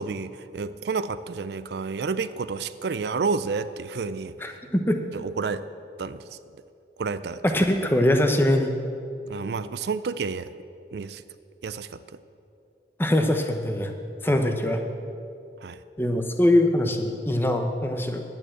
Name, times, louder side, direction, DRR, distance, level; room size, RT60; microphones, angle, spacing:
voice 1, 0.0-4.5 5.1-5.7 6.0-6.2 7.0-7.4 9.3-10.5 10.9-11.2 11.6-12.0 15.6-15.8, right 4 dB, 70° right, 14 dB, 0.4 m, -30 dB
voice 2, 4.4-5.0 7.4-8.8 13.0-13.9 14.2-14.8 16.0-18.2, left 1 dB, 10° left, 5 dB, 0.8 m, -22 dB
11.0 x 8.7 x 7.8 m, 2.5 s
head